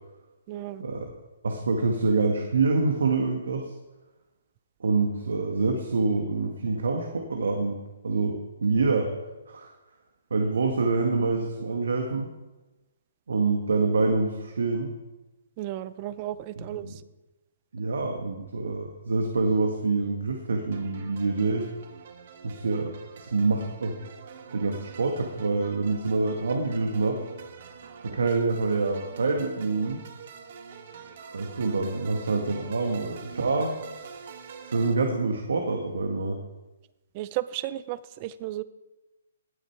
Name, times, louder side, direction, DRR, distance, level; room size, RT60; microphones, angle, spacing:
voice 1, 0.5-0.8 15.6-17.0 37.1-38.6, right 14 dB, 30° right, 16 dB, 0.6 m, -34 dB
voice 2, 1.4-3.7 4.8-9.1 9.5-9.7 10.3-12.3 13.3-14.9 16.8-16.9 17.7-21.7 22.4-24.0 24.5-27.2 28.0-30.0 31.3-34.2 34.6-36.4, right 3 dB, 80° right, 3 dB, 1.9 m, -26 dB
sound 1, 20.7-34.9, right 6 dB, 50° right, 1.6 m, -45 dB
18.0 x 9.0 x 4.6 m, 1.1 s
hypercardioid pair, 160°, 0 cm